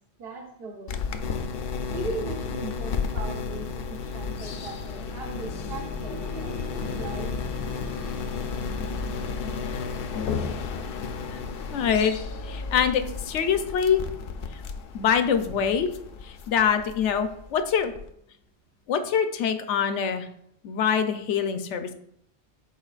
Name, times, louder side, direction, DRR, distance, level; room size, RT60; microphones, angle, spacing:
voice 1, 0.2-1.0 1.9-7.3, right 3 dB, 55° right, -1 dB, 1.1 m, -38 dB
sound 1, 0.9-18.1, left 5 dB, 60° left, 0.7 m, -33 dB
sound 2, 5.0-15.6 16.4-16.5 17.0-17.1, left 3 dB, 85° right, 3.3 m, -42 dB
voice 2, 11.7-12.1 12.4-14.0 14.5-14.6 14.9-15.9 16.2-17.9 18.9-20.3 20.6-21.9, left 7 dB, 80° left, 8 dB, 1.0 m, -24 dB
10.5 x 4.5 x 2.4 m, 0.72 s
omnidirectional pair, 1.2 m